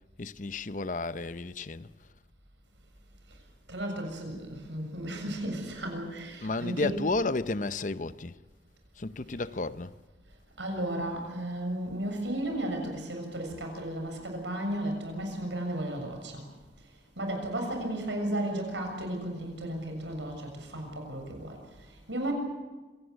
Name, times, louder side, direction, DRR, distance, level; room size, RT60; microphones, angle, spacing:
voice 1, 0.2-1.9 6.4-8.3 9.0-9.9, left 3 dB, 45° left, 0.7 m, -32 dB
voice 2, 3.7-6.9 10.6-16.4 17.2-22.3, right 1 dB, 85° right, 7.1 m, -34 dB
26.0 x 18.0 x 8.2 m
head